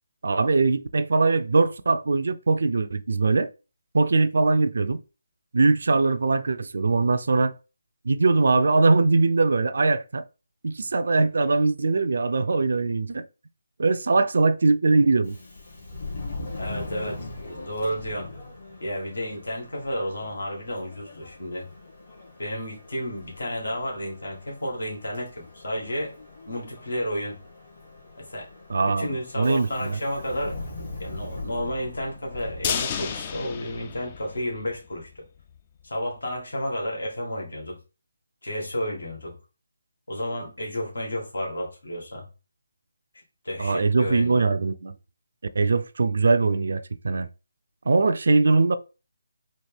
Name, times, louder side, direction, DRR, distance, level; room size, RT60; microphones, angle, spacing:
voice 1, 0.2-3.5 3.9-5.0 5.5-7.5 8.0-10.2 10.6-13.2 13.8-15.4 28.7-30.0 43.6-44.9 45.6-47.3 47.9-48.8, right 3 dB, 65° right, 0.4 m, -21 dB
Subway metro underground, 15.2-33.5, left 2 dB, 50° left, 1.8 m, -41 dB
voice 2, 16.6-18.3 18.8-21.7 22.4-26.1 26.5-27.4 28.2-28.5 28.8-30.6 31.0-35.2 35.8-37.8 38.4-39.4 40.1-42.3 43.4-44.5, equal, 75° left, 1.6 m, -32 dB
sound 1, 32.6-34.8 35.1-35.2 35.6-35.7, left 7 dB, 30° left, 0.4 m, -31 dB
4.2 x 2.4 x 3.4 m
figure-of-eight pair, 155°, 0 cm